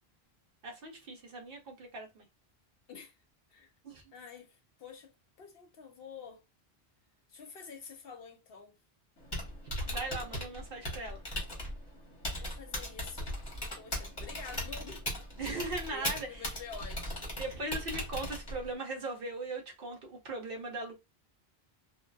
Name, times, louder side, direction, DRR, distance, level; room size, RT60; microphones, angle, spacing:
voice 1, 0.6-2.3 3.8-4.0 9.9-11.2 15.4-16.4 17.4-20.9, right 2 dB, 60° right, 0.9 m, -39 dB
voice 2, 4.1-5.1 5.4-6.4 7.3-8.8 12.3-15.1 15.9-17.2, left 5 dB, 65° left, 0.9 m, -48 dB
Typing, 9.2-18.7, left 1 dB, 25° left, 0.9 m, -38 dB
2.7 x 2.2 x 2.2 m
omnidirectional pair, 1.1 m